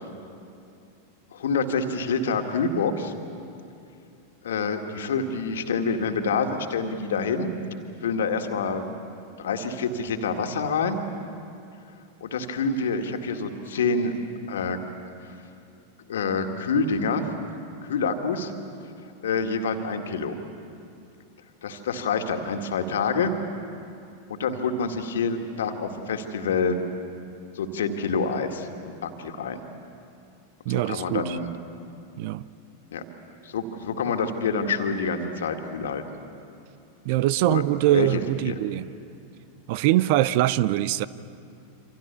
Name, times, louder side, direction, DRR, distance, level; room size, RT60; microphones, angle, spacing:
voice 1, 1.3-3.1 4.4-7.5 8.0-8.8 9.4-11.0 12.2-14.1 14.5-14.8 15.3-15.4 16.1-17.2 17.8-18.5 19.2-20.4 21.6-23.3 24.3-26.8 27.5-29.6 30.7-31.5 32.9-33.0 33.4-36.0 37.4-37.6 37.9-38.5, left 4 dB, 60° left, 6 dB, 2.1 m, -27 dB
voice 2, 30.7-31.4 32.2-32.5 37.0-38.9 39.7-41.1, right 14 dB, 50° right, 18 dB, 0.6 m, -23 dB
27.5 x 26.0 x 7.0 m, 2.6 s
figure-of-eight pair, 90°, 0 cm